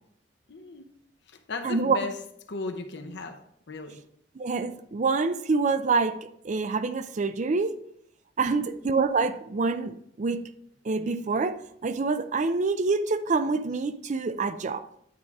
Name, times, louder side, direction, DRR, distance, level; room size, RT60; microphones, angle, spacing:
voice 1, 0.5-0.9 1.3-2.2 2.5-4.0 8.4-8.7, left 3 dB, 65° left, 0.7 m, -36 dB
voice 2, 1.6-2.0 4.4-6.2 6.4-7.7 8.4-10.4 10.8-14.8, right 4 dB, 40° right, 0.4 m, -26 dB
9.3 x 4.7 x 3.7 m
head